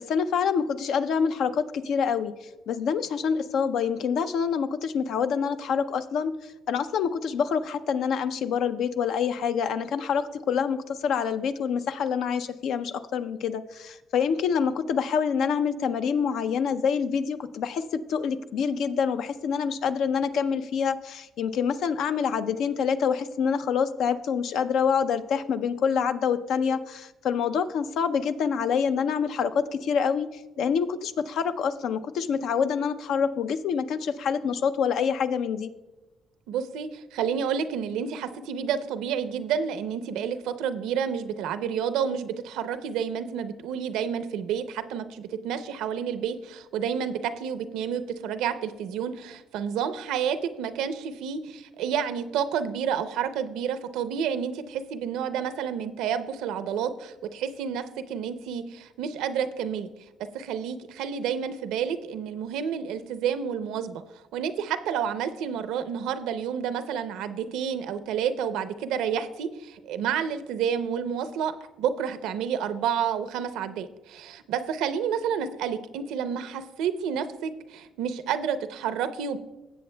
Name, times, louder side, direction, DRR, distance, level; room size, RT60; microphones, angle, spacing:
voice 1, 0.0-2.3 2.7-35.7, left 6 dB, 70° left, 11 dB, 0.5 m, -26 dB
voice 2, 36.5-59.9 60.3-64.0 64.3-79.4, right 8 dB, 90° right, 10 dB, 0.6 m, -30 dB
16.5 x 7.7 x 2.2 m, 1.1 s
cardioid pair, 95°, 0 cm